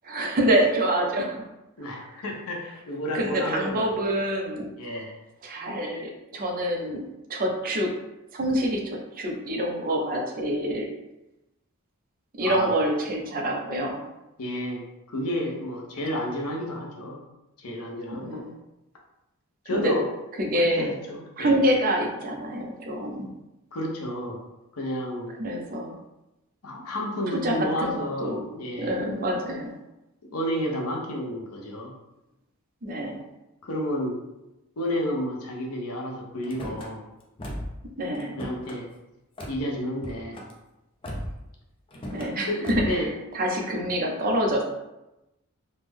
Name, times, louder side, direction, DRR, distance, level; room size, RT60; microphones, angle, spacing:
voice 1, 0.0-1.4 1.9-2.2 3.1-4.7 5.4-7.0 7.3-7.9 8.3-10.9 12.4-14.0 18.1-18.5 19.7-19.9 20.4-20.9 21.4-23.3 25.4-26.0 27.4-28.4 28.8-29.7 32.8-33.2 38.0-38.4 42.1-43.1 43.3-44.9, right 1 dB, 40° right, 1 dB, 0.5 m, -26 dB
voice 2, 1.8-3.9 4.8-5.1 12.4-12.7 14.4-17.2 17.6-18.4 19.7-20.1 20.5-21.6 23.7-24.4 24.7-25.3 26.6-29.0 30.3-31.9 33.6-34.2 34.8-37.0 38.3-38.9 39.5-40.4 42.5-43.1, equal, 85° left, -1 dB, 0.7 m, -31 dB
Car / Slam, 36.4-36.9 37.4-37.8 38.1-38.8 39.4-39.6 40.0-40.5 41.0-41.5 41.9-42.3 42.6-43.0, equal, 25° left, 0.4 m, -36 dB
3.2 x 2.0 x 3.4 m, 0.95 s
head